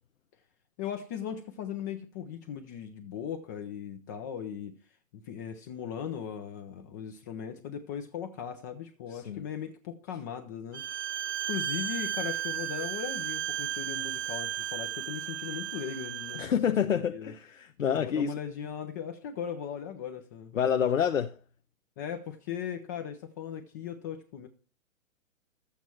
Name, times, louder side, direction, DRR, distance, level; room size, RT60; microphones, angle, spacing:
voice 1, 0.8-4.8 5.1-10.8 11.5-16.6 16.8-17.3 17.9-20.9 22.0-24.5, left 8 dB, 15° left, 0.4 m, -38 dB
voice 2, 9.1-9.4 16.3-18.3 20.5-21.4, left 8 dB, 70° left, 0.9 m, -28 dB
Bowed string instrument, 10.7-16.5, right 11 dB, 55° right, 1.1 m, -34 dB
12.5 x 8.4 x 4.5 m
figure-of-eight pair, 130°, 40 cm